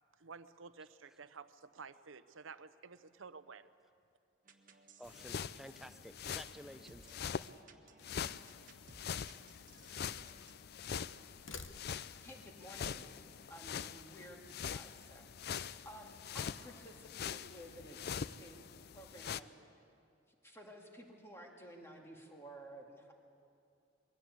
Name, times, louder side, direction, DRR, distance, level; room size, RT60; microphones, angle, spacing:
voice 1, 0.2-3.7, right 5 dB, 85° right, 13 dB, 0.7 m, -52 dB
sound 1, 4.4-10.6, right 3 dB, 45° right, 1.2 m, -63 dB
sound 2, 5.0-7.5 8.0-19.4, left 7 dB, 55° left, 0.4 m, -44 dB
voice 2, 5.0-7.1, equal, ahead, 9 dB, 0.6 m, -52 dB
sound 3, 7.9-8.6 9.5-10.6 11.2-12.3, left 4 dB, 80° left, 1.0 m, -54 dB
voice 3, 12.2-13.2 13.5-18.7 18.9-19.5 20.3-23.1, equal, 15° left, 1 dB, 2.2 m, -54 dB
22.0 x 16.5 x 8.5 m, 2.4 s
head